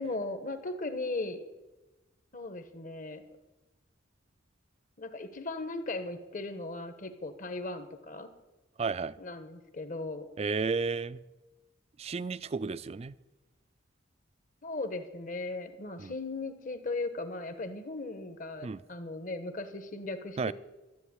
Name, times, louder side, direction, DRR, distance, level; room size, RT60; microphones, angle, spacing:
voice 1, 0.0-1.4 2.3-3.2 5.0-8.3 9.2-10.3 14.6-20.5, left 2 dB, 45° left, 1.3 m, -37 dB
voice 2, 8.8-9.1 10.4-11.2 12.0-13.1 16.0-16.1 18.6-18.8 20.4-20.5, right 4 dB, 35° right, 0.4 m, -32 dB
13.0 x 8.0 x 9.7 m
head